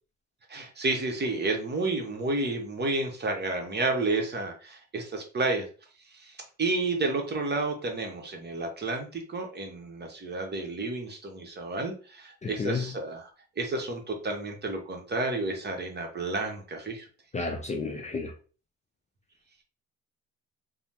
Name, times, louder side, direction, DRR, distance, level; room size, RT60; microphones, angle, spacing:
voice 1, 0.5-5.7 6.2-6.3 6.6-13.3 13.6-17.0, right 2 dB, 35° right, 0.8 m, -31 dB
voice 2, 12.4-13.0 17.3-18.3, left 4 dB, 25° left, 0.4 m, -32 dB
3.2 x 2.0 x 2.8 m
cardioid pair, 90°, 30 cm